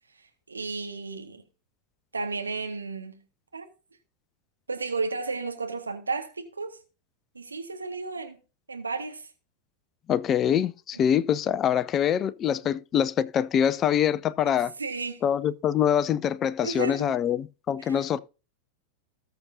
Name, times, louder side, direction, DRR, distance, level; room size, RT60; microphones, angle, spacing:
voice 1, 0.5-1.4 2.1-3.2 3.5-3.7 4.7-6.8 7.3-8.4 8.7-9.3 14.8-15.2 16.6-17.2 17.8-18.0, right 3 dB, 75° right, 1.7 m, -33 dB
voice 2, 10.1-14.7 15.2-18.2, left 9 dB, 30° left, 0.5 m, -24 dB
19.0 x 6.8 x 2.8 m
figure-of-eight pair, 90°, 0 cm